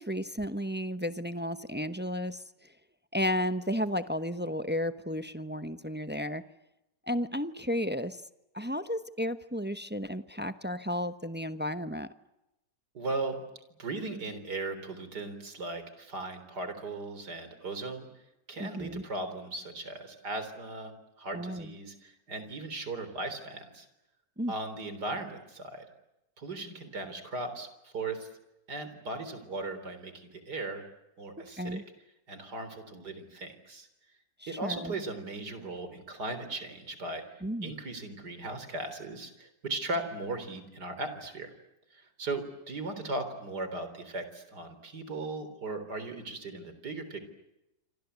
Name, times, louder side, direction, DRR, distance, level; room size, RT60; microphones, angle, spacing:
voice 1, 0.0-2.4 3.1-6.4 7.1-8.2 8.5-12.1 18.6-19.0 21.3-21.7 24.4-24.5 31.6-31.8 34.4-34.9 37.4-37.7, equal, 10° right, 11 dB, 0.5 m, -33 dB
voice 2, 12.9-13.4 13.8-18.2 18.5-23.9 24.5-25.9 26.4-28.3 28.7-30.8 31.2-31.8 32.3-33.9 34.5-41.5 41.9-47.2, right 2 dB, 65° right, 10 dB, 4.4 m, -37 dB
27.5 x 26.0 x 8.2 m, 0.93 s
omnidirectional pair, 1.9 m